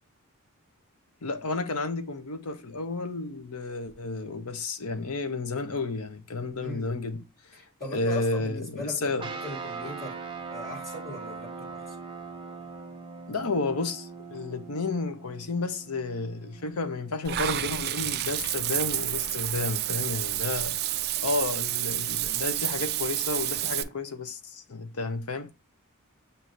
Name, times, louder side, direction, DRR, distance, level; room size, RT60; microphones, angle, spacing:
voice 1, 1.2-7.6 7.9-9.3 13.3-20.8 21.2-25.5, left 3 dB, 90° left, 0.8 m, -31 dB
voice 2, 6.6-7.0 7.8-10.2 10.5-11.9, left 1 dB, 35° left, 1.5 m, -39 dB
sound 1, 9.2-19.9, right 4 dB, 20° right, 0.7 m, -42 dB
Water / Bathtub (filling or washing), 17.2-23.8, right 14 dB, 45° right, 0.4 m, -29 dB
7.5 x 2.7 x 2.5 m
head